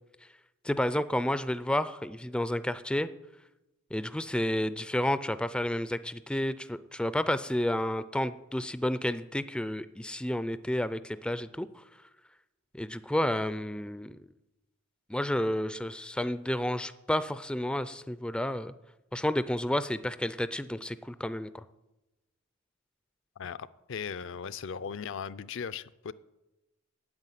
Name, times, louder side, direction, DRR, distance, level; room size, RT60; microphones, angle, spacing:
voice 1, 0.6-3.1 3.9-11.8 12.7-14.2 15.1-18.7 19.1-21.6, left 1 dB, 5° left, 0.3 m, -31 dB
voice 2, 23.4-26.1, left 6 dB, 65° left, 0.5 m, -38 dB
9.6 x 8.5 x 9.1 m
head